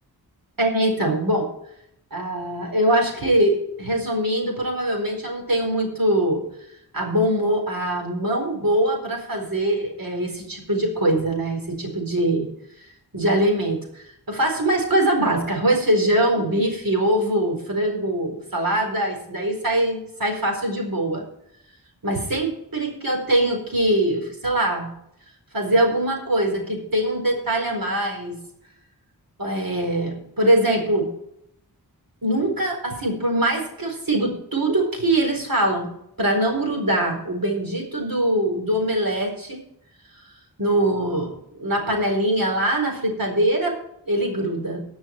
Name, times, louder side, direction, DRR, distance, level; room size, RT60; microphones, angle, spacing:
voice 1, 0.6-1.5 2.1-6.4 6.9-12.4 13.1-21.2 22.0-24.9 25.5-28.4 29.4-31.1 32.2-35.9 36.2-39.6 40.6-43.8 44.1-44.8, right 1 dB, 60° right, 1 dB, 4.3 m, -22 dB
19.0 x 6.4 x 4.5 m, 0.76 s
wide cardioid pair, 75°, 38 cm